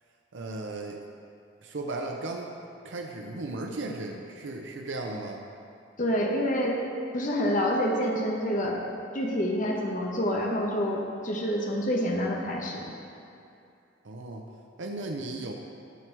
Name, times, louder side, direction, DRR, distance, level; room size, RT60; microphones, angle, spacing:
voice 1, 0.3-1.0 1.6-2.5 2.8-5.4 14.0-14.5 14.8-15.5, right 2 dB, 85° right, 1 dB, 0.7 m, -35 dB
voice 2, 6.0-6.9 7.1-8.8 9.1-12.8, equal, 45° left, -1 dB, 1.1 m, -27 dB
11.0 x 6.0 x 4.6 m, 2.5 s
head